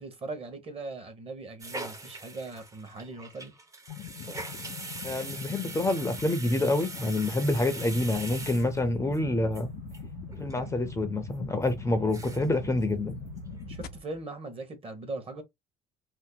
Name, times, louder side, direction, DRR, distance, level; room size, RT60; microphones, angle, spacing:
voice 1, 0.0-3.5 13.7-15.4, right 3 dB, 35° right, 1.1 m, -40 dB
sound 1, 1.6-9.2 9.5-9.6 9.9-10.0 10.3-10.6 11.0-11.1 11.6-11.7 12.0-12.6 12.8-12.9 13.3-13.8 14.1-14.2, right 2 dB, 20° right, 0.7 m, -42 dB
sound 2, 3.9-13.9, left 12 dB, 70° left, 0.4 m, -43 dB
voice 2, 5.0-9.7 10.4-13.2, left 2 dB, 15° left, 0.5 m, -27 dB
sound 3, 7.9-14.0, right 4 dB, 70° right, 0.5 m, -45 dB
2.8 x 2.1 x 3.6 m
cardioid pair, 110°, 17 cm